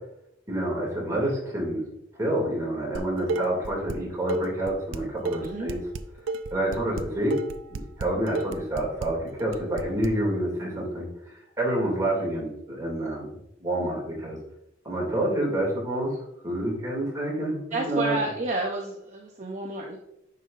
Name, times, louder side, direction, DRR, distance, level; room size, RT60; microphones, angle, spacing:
voice 1, 0.5-1.8 2.2-5.8 6.5-7.3 7.7-14.4 14.8-16.2 16.4-18.2, right 1 dB, 15° right, -3 dB, 2.5 m, -28 dB
Dishes pots and pans, 2.9-4.0 4.3-10.1, right 3 dB, 75° right, 0.5 m, -32 dB
voice 2, 17.7-20.0, right 2 dB, 40° right, -1 dB, 0.7 m, -30 dB
9.2 x 5.4 x 2.5 m, 0.80 s
head